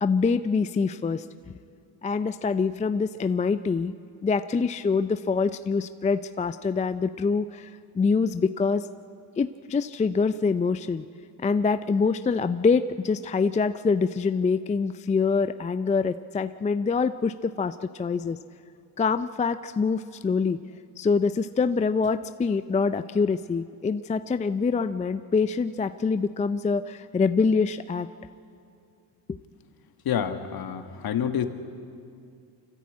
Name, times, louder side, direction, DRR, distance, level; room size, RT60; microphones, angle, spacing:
voice 1, 0.0-1.3 2.0-3.9 4.2-8.9 9.4-11.0 11.4-18.4 19.0-20.6 21.0-28.1 29.3-29.4, left 5 dB, 15° left, 12 dB, 0.4 m, -25 dB
voice 2, 30.0-31.5, left 8 dB, 55° left, 8 dB, 1.6 m, -28 dB
25.5 x 14.5 x 8.5 m, 2.4 s
cardioid pair, 90°, 44 cm